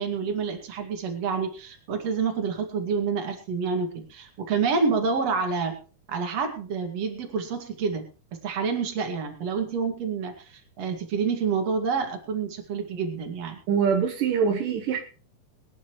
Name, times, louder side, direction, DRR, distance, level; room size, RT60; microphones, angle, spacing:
voice 1, 0.0-5.7 6.1-8.0 8.4-13.6, right 5 dB, 50° right, 4 dB, 3.1 m, -28 dB
voice 2, 13.7-15.0, right 6 dB, 80° right, 4 dB, 2.9 m, -24 dB
23.5 x 10.0 x 3.1 m, 0.35 s
omnidirectional pair, 3.8 m